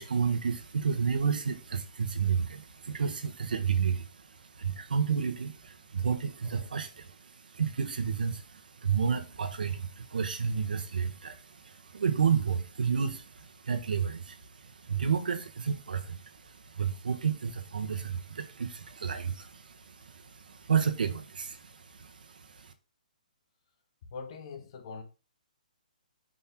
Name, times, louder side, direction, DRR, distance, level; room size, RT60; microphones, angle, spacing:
voice 1, 0.0-22.7, right 6 dB, 80° right, 1.2 m, -31 dB
voice 2, 6.4-6.7 24.1-25.0, left 5 dB, 40° left, 1.4 m, -43 dB
5.9 x 5.3 x 3.7 m
hypercardioid pair, 165°, 5 cm